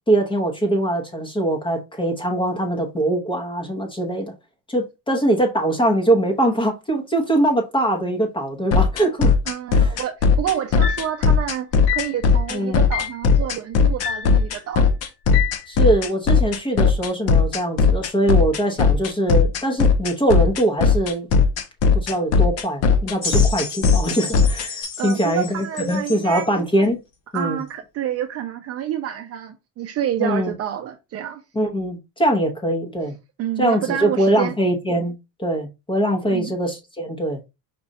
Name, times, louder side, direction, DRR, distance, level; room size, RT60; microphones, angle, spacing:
voice 1, 0.1-4.3 4.7-9.3 9.7-9.9 12.5-12.9 15.7-21.3 21.9-27.0 27.3-27.6 30.2-30.5 31.5-33.1 33.6-35.1 35.4-37.4, right 1 dB, 15° left, 0.9 m, -22 dB
sound 1, 8.7-24.7, left 5 dB, 45° left, 0.6 m, -17 dB
voice 2, 9.5-14.8 25.0-26.5 27.3-31.4 33.4-34.6 36.2-36.5, right 10 dB, 40° right, 0.5 m, -28 dB
sound 2, 10.8-11.2 11.9-12.2 12.9-13.2 14.0-14.4 15.3-15.7, left 12 dB, 90° left, 0.6 m, -27 dB
sound 3, 23.2-26.5 27.4-27.5, left 4 dB, 65° left, 1.7 m, -32 dB
5.1 x 2.4 x 4.1 m
cardioid pair, 165°, 37 cm